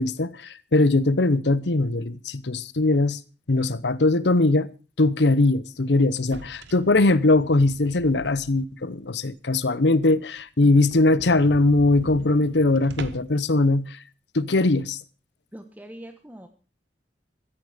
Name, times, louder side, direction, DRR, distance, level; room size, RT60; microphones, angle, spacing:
voice 1, 0.0-3.2 3.5-4.7 5.0-14.0 14.3-15.0, left 2 dB, 70° left, 0.9 m, -21 dB
sound 1, 6.2-8.7 9.1-9.2 9.7-9.8 10.0-10.1 10.4-10.5 10.8-13.4, right 2 dB, 75° right, 1.4 m, -41 dB
voice 2, 15.5-16.5, equal, 10° right, 1.2 m, -42 dB
16.0 x 13.5 x 5.1 m
head